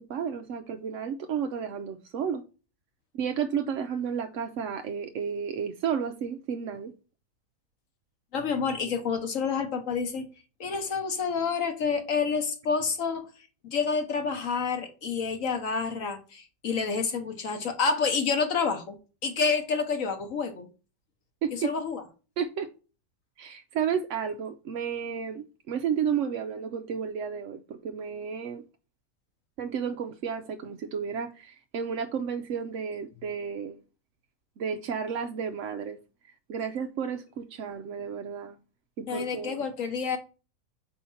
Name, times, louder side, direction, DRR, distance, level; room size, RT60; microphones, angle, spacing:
voice 1, 0.0-2.4 3.1-6.9 21.4-21.5 22.4-22.7 23.4-28.6 29.6-33.8 34.6-36.0 36.5-38.6 39.0-39.6, right 7 dB, 65° right, 0.8 m, -32 dB
voice 2, 8.3-10.3 10.6-13.3 13.6-19.0 19.2-20.7 21.5-22.0 39.1-40.2, left 5 dB, 55° left, 1.3 m, -28 dB
4.6 x 4.3 x 5.6 m
omnidirectional pair, 1.8 m